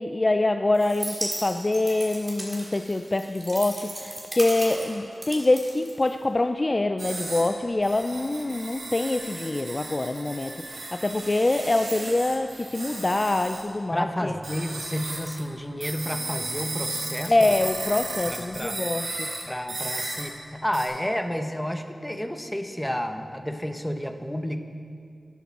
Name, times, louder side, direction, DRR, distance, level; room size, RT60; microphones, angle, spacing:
voice 1, 0.0-14.3 17.3-19.3, left 2 dB, 35° left, 7 dB, 0.4 m, -25 dB
sound 1, 0.7-6.5, right 1 dB, 20° right, 2.4 m, -36 dB
sound 2, 7.0-7.5 7.8-13.6 14.4-15.4 15.8-19.4 19.7-20.2 20.7-20.9, right 2 dB, 85° right, 2.1 m, -35 dB
voice 2, 13.9-17.6 18.3-18.8 19.5-24.6, equal, 10° left, 6 dB, 0.8 m, -31 dB
13.0 x 10.5 x 4.2 m, 2.2 s
wide cardioid pair, 75°, 0 cm